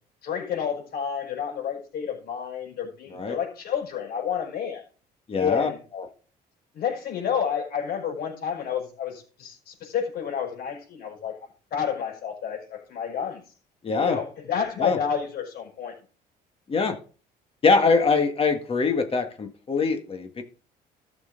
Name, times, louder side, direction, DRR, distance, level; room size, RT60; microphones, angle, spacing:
voice 1, 0.2-4.8 5.4-5.8 6.7-11.3 11.7-13.4 14.0-15.9, left 7 dB, 65° left, 0 dB, 5.3 m, -30 dB
voice 2, 5.3-6.1 13.8-14.2 14.8-15.0 16.7-17.0 17.6-20.4, left 4 dB, 35° left, 5 dB, 1.7 m, -23 dB
14.0 x 6.6 x 3.9 m, 0.38 s
cardioid pair, 110°, 17 cm